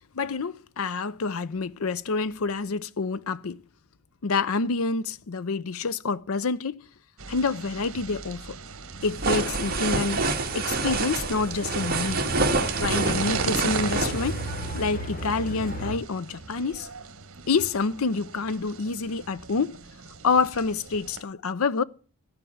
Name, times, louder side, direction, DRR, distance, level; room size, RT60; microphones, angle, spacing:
voice 1, 0.1-3.6 4.2-6.8 7.3-8.6 9.0-10.2 10.5-12.2 12.8-14.4 14.7-16.9 17.5-19.8 20.2-21.8, left 4 dB, 75° left, 0.6 m, -27 dB
sound 1, 7.2-21.2, right 4 dB, 70° right, 1.4 m, -38 dB
sound 2, 9.0-14.9, right 3 dB, 40° right, 1.7 m, -27 dB
sound 3, 9.3-16.0, right 1 dB, 40° left, 2.2 m, -36 dB
14.0 x 4.9 x 7.1 m
head